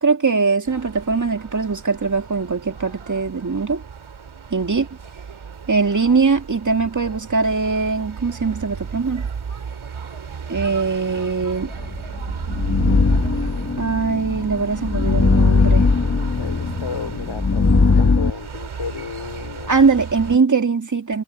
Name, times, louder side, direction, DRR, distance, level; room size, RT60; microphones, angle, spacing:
voice 1, 0.0-3.8 4.5-4.9 5.7-9.3 10.5-11.7 13.8-15.9 19.7-21.2, right 4 dB, 40° right, 2.4 m, -21 dB
sound 1, 0.6-20.4, right 6 dB, 85° right, 3.0 m, -34 dB
sound 2, 11.9-18.3, left 4 dB, 35° left, 1.4 m, -19 dB
voice 2, 16.3-17.7 17.9-19.8, left 5 dB, 70° left, 3.5 m, -33 dB
wide cardioid pair, 120°, 47 cm